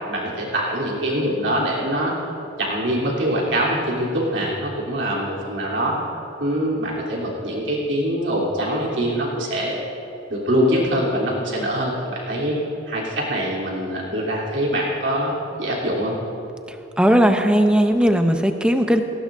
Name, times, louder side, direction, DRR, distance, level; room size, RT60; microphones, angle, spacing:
voice 1, 0.1-2.1 2.6-6.0 6.4-9.7 10.3-12.6 12.9-15.3 15.6-16.2, equal, 70° right, -4 dB, 3.3 m, -23 dB
voice 2, 17.0-19.0, equal, 5° right, 6 dB, 0.6 m, -17 dB
18.0 x 17.0 x 2.6 m, 3.0 s
head